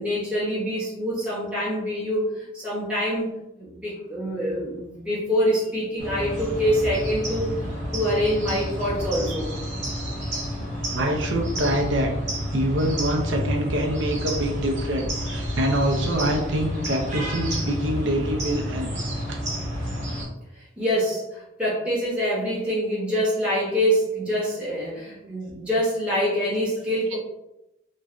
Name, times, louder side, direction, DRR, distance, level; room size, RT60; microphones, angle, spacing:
voice 1, 0.0-3.3 3.6-9.5 20.6-27.2, equal, 5° right, -9 dB, 0.8 m, -25 dB
sound 1, 6.0-20.2, equal, 40° right, 1.0 m, -30 dB
voice 2, 10.9-12.1 12.5-20.0, right 1 dB, 85° right, 1 dB, 0.6 m, -26 dB
3.0 x 2.2 x 2.5 m, 0.91 s
head